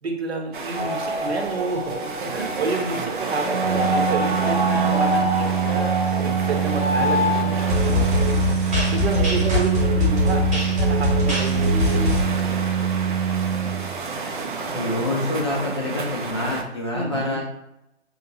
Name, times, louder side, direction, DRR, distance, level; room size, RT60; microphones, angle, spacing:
voice 1, 0.0-8.2 8.9-12.0 12.8-13.3 16.9-17.4, right 3 dB, 60° right, 3 dB, 0.9 m, -30 dB
sound 1, 0.5-16.6, right 4 dB, 45° right, 0.5 m, -32 dB
sound 2, 0.8-12.2, left 1 dB, 10° right, 1.0 m, -24 dB
Organ, 3.4-14.2, right 8 dB, 90° right, 1.0 m, -24 dB
voice 2, 14.7-17.4, left 2 dB, 25° left, -3 dB, 0.5 m, -26 dB
5.0 x 2.8 x 2.7 m, 0.84 s
hypercardioid pair, 155°, 36 cm